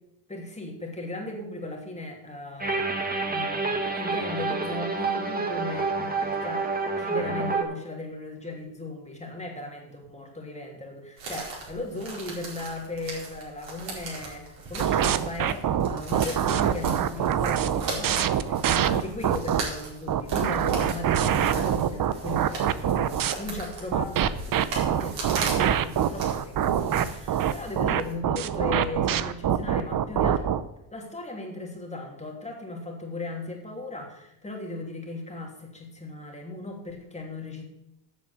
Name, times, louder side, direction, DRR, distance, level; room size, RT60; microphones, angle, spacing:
voice 1, 0.3-2.8 3.3-6.7 7.0-30.4 30.9-37.6, left 2 dB, 15° left, 0 dB, 2.9 m, -37 dB
sound 1, 2.6-7.6, right 3 dB, 20° right, 2.0 m, -28 dB
sound 2, 11.2-28.1, right 3 dB, 60° right, 4.7 m, -38 dB
sound 3, 14.8-19.6 20.1-23.3 23.9-30.6, right 9 dB, 45° right, 0.8 m, -24 dB
8.5 x 7.0 x 8.1 m, 0.85 s
cardioid pair, 90°, 48 cm